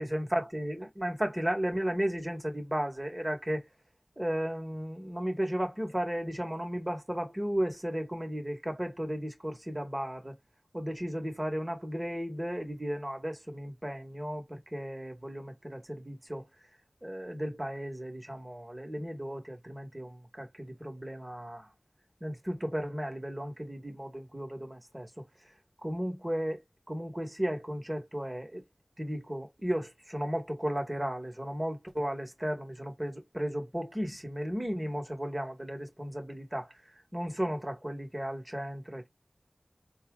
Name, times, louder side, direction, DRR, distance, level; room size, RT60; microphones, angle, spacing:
voice 1, 0.0-3.6 4.2-10.4 10.7-16.4 17.0-21.7 22.2-25.1 25.8-26.6 26.9-28.6 29.0-36.7 37.1-39.1, equal, 25° right, 1.5 m, -34 dB
4.1 x 2.4 x 3.7 m
wide cardioid pair, 45°, 0 cm